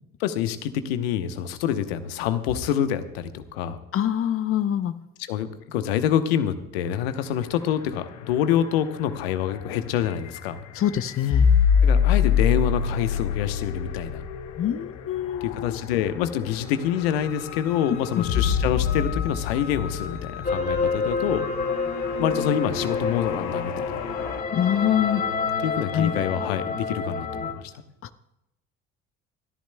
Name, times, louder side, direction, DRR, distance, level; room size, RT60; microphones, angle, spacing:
voice 1, 0.2-3.8 5.2-10.6 11.8-14.2 15.4-21.5 22.2-24.0 25.6-27.7, left 10 dB, 85° left, 10 dB, 1.0 m, -26 dB
voice 2, 3.9-4.9 10.7-11.5 14.6-15.8 24.5-25.2 25.9-26.1, left 10 dB, 45° left, 12 dB, 0.7 m, -24 dB
sound 1, 6.9-24.4, left 7 dB, 65° left, 1.1 m, -27 dB
sound 2, 20.4-27.5, left 4 dB, 30° left, 2.9 m, -28 dB
26.5 x 13.5 x 2.2 m, 0.89 s
hypercardioid pair, 60°, 30 cm